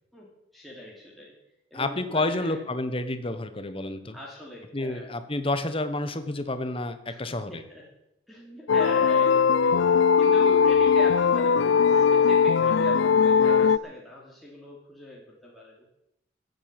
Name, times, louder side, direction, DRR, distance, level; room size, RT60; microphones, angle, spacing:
voice 1, 0.1-1.3 1.7-2.6 4.1-5.1 7.1-7.8 8.3-9.7 10.2-15.7, left 1 dB, ahead, -4 dB, 3.1 m, -41 dB
voice 2, 1.7-4.2 4.7-7.6, left 2 dB, 30° left, 10 dB, 1.2 m, -30 dB
sound 1, 8.7-13.8, left 6 dB, 75° left, 0.4 m, -20 dB
15.0 x 8.1 x 9.0 m, 0.84 s
head